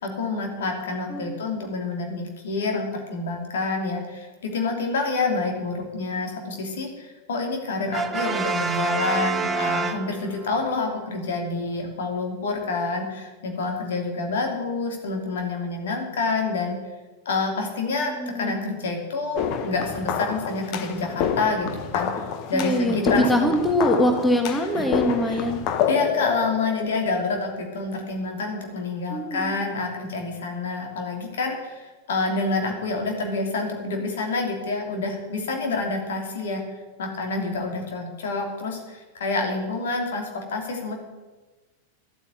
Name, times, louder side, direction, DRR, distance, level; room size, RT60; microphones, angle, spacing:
voice 1, 0.0-16.8 17.2-22.1 22.5-23.5 24.7-24.9 25.2-25.4 25.9-36.6 37.0-40.9, left 3 dB, 60° left, 2 dB, 2.9 m, -28 dB
voice 2, 1.1-1.4 18.0-18.5 22.5-25.6 29.1-29.5, left 1 dB, 5° left, 4 dB, 1.6 m, -23 dB
Brass instrument, 7.9-10.6, right 4 dB, 15° right, 0.9 m, -27 dB
sound 1, 19.3-27.5, left 7 dB, 40° left, 1.2 m, -28 dB
12.0 x 8.8 x 9.1 m, 1.2 s
figure-of-eight pair, 90°, 0 cm